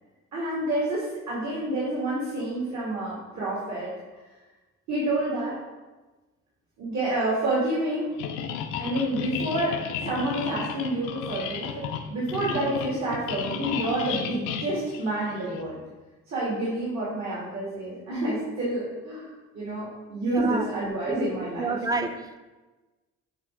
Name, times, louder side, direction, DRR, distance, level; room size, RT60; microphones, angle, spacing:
voice 1, 0.3-3.9 4.9-5.6 6.8-8.1 8.8-9.8 10.0-11.8 12.1-15.8 16.3-21.8, right 1 dB, 65° right, -6 dB, 2.3 m, -28 dB
sound 1, 8.2-15.6, left 7 dB, 90° left, 0.6 m, -34 dB
voice 2, 20.2-20.7 21.1-21.2 21.6-22.4, right 3 dB, 10° right, 7 dB, 0.6 m, -29 dB
8.1 x 3.4 x 5.1 m, 1.2 s
cardioid pair, 90°, 30 cm